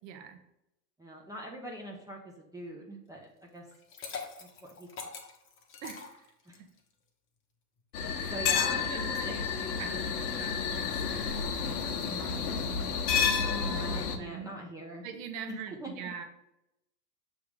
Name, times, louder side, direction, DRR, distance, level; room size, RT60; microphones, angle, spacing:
voice 1, 0.0-0.4 5.8-6.2 8.1-12.9 13.7-14.5 15.0-16.2, right 7 dB, 50° right, 6 dB, 1.2 m, -44 dB
voice 2, 1.0-3.6 4.6-4.9 6.5-6.6 8.3-9.3 13.4-15.0 15.5-15.9, equal, 5° right, -2 dB, 0.7 m, -42 dB
Liquid, 3.7-6.8, left 5 dB, 25° left, 1.0 m, -43 dB
sound 1, 7.9-14.2, left 6 dB, 65° left, 1.1 m, -30 dB
6.7 x 3.5 x 5.1 m, 0.88 s
hypercardioid pair, 110°, 49 cm